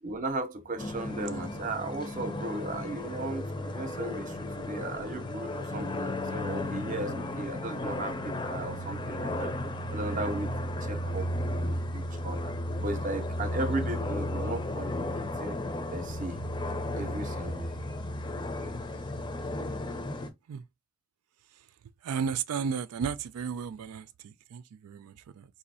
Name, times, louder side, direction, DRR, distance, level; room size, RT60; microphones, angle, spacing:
voice 1, 0.0-9.5 9.9-11.3 11.5-15.1 15.4-15.6 15.9-16.4 16.9-17.9, right 2 dB, 35° right, 0.6 m, -36 dB
sound 1, 0.8-20.3, left 1 dB, 20° left, 0.5 m, -34 dB
voice 2, 22.0-25.4, right 6 dB, 85° right, 0.4 m, -34 dB
4.1 x 2.7 x 2.6 m
head